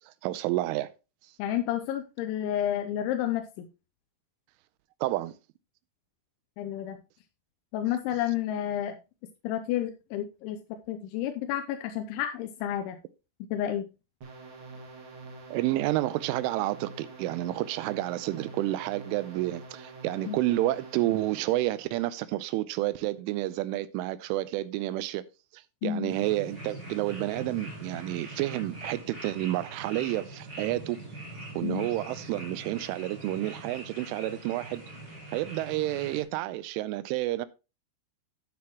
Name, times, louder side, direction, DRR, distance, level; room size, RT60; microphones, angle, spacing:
voice 1, 0.2-0.9 5.0-5.4 15.5-25.2 25.5-31.0 31.6-34.8 35.3-37.5, right 16 dB, 85° right, 3.1 m, -30 dB
voice 2, 1.4-3.7 6.6-7.0 7.7-9.0 9.4-10.6 10.9-13.0 13.5-13.9 20.3-20.4 25.8-26.1 31.6-31.9, left 11 dB, 80° left, 2.9 m, -30 dB
sound 1, 14.2-21.8, right 3 dB, 60° right, 1.4 m, -46 dB
sound 2, 26.1-36.2, right 2 dB, 20° right, 5.2 m, -42 dB
9.6 x 9.5 x 2.9 m
omnidirectional pair, 5.7 m